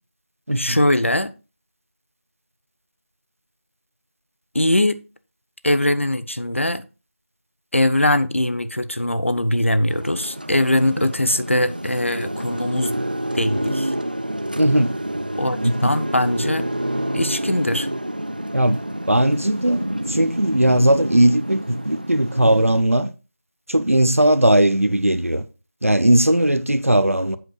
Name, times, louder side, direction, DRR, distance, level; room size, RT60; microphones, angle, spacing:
voice 1, 0.6-1.3 4.5-5.0 5.6-6.8 7.7-12.9 13.3-13.9 15.4-16.7 17.1-17.9, left 1 dB, 65° left, 1.0 m, -21 dB
sound 1, 9.9-22.8, right 1 dB, 40° right, 0.4 m, -28 dB
voice 2, 14.6-14.9 15.6-15.9 18.5-19.8 20.1-23.1 23.7-25.4 25.8-27.4, right 1 dB, 80° right, 1.0 m, -18 dB
10.5 x 8.0 x 2.4 m
figure-of-eight pair, 175°, 7 cm